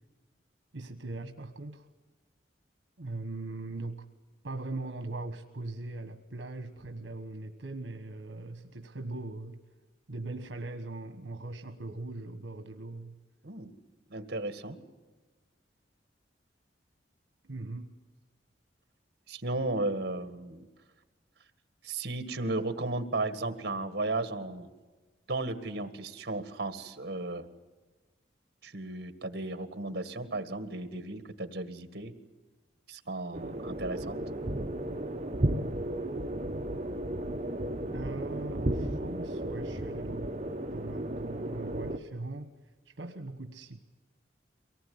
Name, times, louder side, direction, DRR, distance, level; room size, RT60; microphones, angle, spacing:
voice 1, 0.7-1.9 3.0-4.1 4.4-9.6 10.1-13.2 17.4-18.0 37.9-40.3 40.7-42.5 42.8-43.8, right 2 dB, 80° right, 7 dB, 1.2 m, -40 dB
voice 2, 14.1-14.8 19.3-20.7 21.8-24.7 25.3-27.5 28.6-32.1 32.9-34.2, right 2 dB, 60° right, 10 dB, 1.8 m, -34 dB
sound 1, 33.3-42.0, right 1 dB, 35° right, 1.2 m, -34 dB
24.0 x 19.0 x 9.5 m, 1.3 s
head